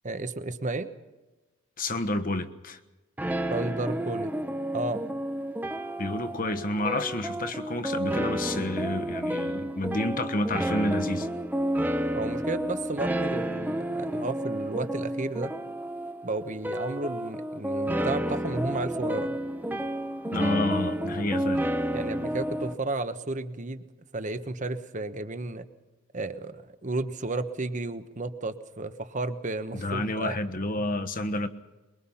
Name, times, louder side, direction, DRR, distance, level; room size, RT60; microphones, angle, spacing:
voice 1, 0.0-0.9 3.5-4.3 4.7-5.0 12.2-15.5 16.2-19.3 21.9-23.8 24.1-25.7 26.1-30.4, right 2 dB, 40° right, 1.1 m, -32 dB
voice 2, 1.8-2.8 6.0-11.3 20.3-21.6 29.7-31.5, left 2 dB, 45° left, 1.3 m, -29 dB
sound 1, 3.2-22.7, right 1 dB, 10° right, 0.9 m, -31 dB
23.5 x 22.0 x 5.7 m
head